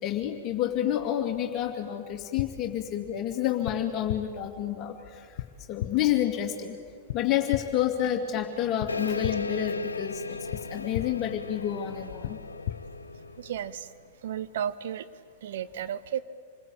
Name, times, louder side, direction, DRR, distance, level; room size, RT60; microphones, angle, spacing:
voice 1, 0.0-5.4 5.7-6.8 7.1-10.2 10.5-12.4, left 11 dB, 35° left, 2 dB, 2.4 m, -29 dB
sound 1, 2.4-2.5 3.6-3.8 4.1-4.2 5.4-5.5 5.8-5.9 7.1-7.2 7.5-7.6 8.8-8.9 9.2-9.3 10.5-10.6 10.9-11.1 12.2-12.3 12.7-12.8, left 13 dB, 60° left, 1.0 m, -31 dB
sound 2, 8.9-14.0, left 3 dB, 90° left, 0.7 m, -36 dB
voice 2, 13.4-13.9 14.2-15.1 15.4-16.2, right 9 dB, 60° right, 14 dB, 0.8 m, -33 dB
27.5 x 21.5 x 8.6 m, 2.1 s
figure-of-eight pair, 105°, 0 cm